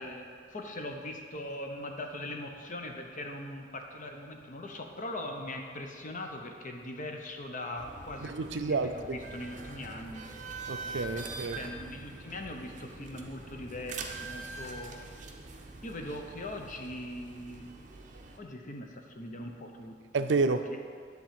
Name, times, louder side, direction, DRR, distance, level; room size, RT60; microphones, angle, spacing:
voice 1, 0.0-10.3 11.5-15.0 15.8-17.7 18.4-20.8, left 1 dB, 45° left, 3 dB, 0.8 m, -41 dB
sound 1, 7.8-18.4, right 3 dB, 45° right, 0.8 m, -44 dB
voice 2, 8.3-8.9 10.7-11.6 20.1-20.8, right 4 dB, 70° right, 9 dB, 0.5 m, -29 dB
10.0 x 3.9 x 7.5 m, 2.2 s
head